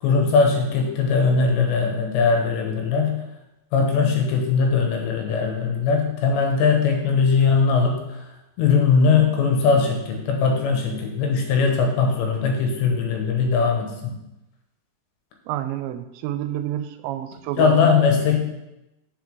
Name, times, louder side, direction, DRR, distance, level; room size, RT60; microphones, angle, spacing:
voice 1, 0.0-3.2 3.7-8.2 8.6-14.2 17.6-18.4, left 5 dB, 90° left, 2 dB, 3.5 m, -20 dB
voice 2, 15.5-18.0, right 12 dB, 90° right, 11 dB, 2.9 m, -29 dB
7.3 x 6.9 x 4.6 m, 0.93 s
omnidirectional pair, 5.0 m